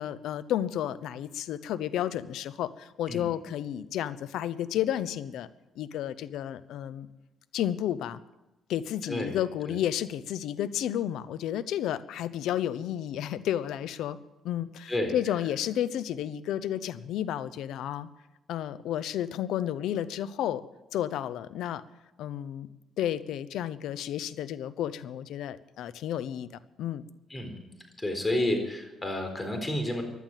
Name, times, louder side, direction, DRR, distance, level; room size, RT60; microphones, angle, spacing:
voice 1, 0.0-5.5 5.8-7.1 7.5-8.2 8.7-14.2 14.4-18.1 18.5-20.6 20.9-21.8 22.2-22.7 23.0-26.5 26.8-27.0, left 11 dB, 85° left, 16 dB, 0.8 m, -32 dB
voice 2, 28.0-30.0, left 1 dB, 20° left, 5 dB, 4.3 m, -30 dB
16.5 x 11.5 x 7.5 m, 1.0 s
cardioid pair, 90°, 0 cm